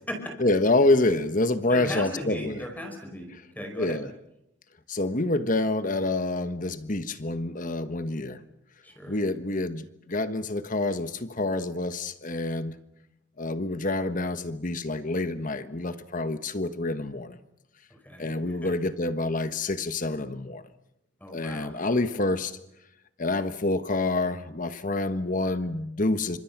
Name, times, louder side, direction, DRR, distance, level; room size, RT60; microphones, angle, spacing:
voice 1, 0.4-2.6 3.8-4.1 4.9-8.4 9.1-12.8 13.4-17.4 18.2-20.6 21.3-22.6 23.2-26.4, left 2 dB, 45° left, 11 dB, 1.3 m, -27 dB
voice 2, 1.7-4.0 8.8-9.2 17.9-18.7 21.2-22.0 25.4-25.7, equal, 10° left, 3 dB, 5.3 m, -37 dB
29.0 x 26.0 x 6.1 m, 0.84 s
head